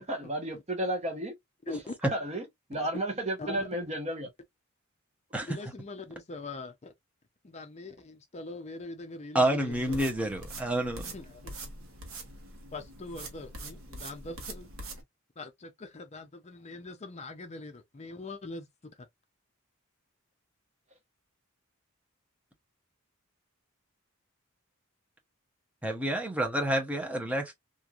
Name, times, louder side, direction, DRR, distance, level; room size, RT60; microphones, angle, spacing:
voice 1, 0.0-1.3 1.7-1.8 2.0-2.4 2.7-4.3, right 1 dB, 30° right, 0.9 m, -33 dB
voice 2, 5.5-6.9 7.4-10.0 11.1-11.6 12.7-14.7 15.4-18.7, left 2 dB, 30° left, 0.5 m, -42 dB
voice 3, 9.3-11.1 25.8-27.5, right 1 dB, 5° right, 0.7 m, -29 dB
sound 1, 9.7-15.0, right 2 dB, 75° right, 1.0 m, -44 dB
3.1 x 2.5 x 2.4 m
head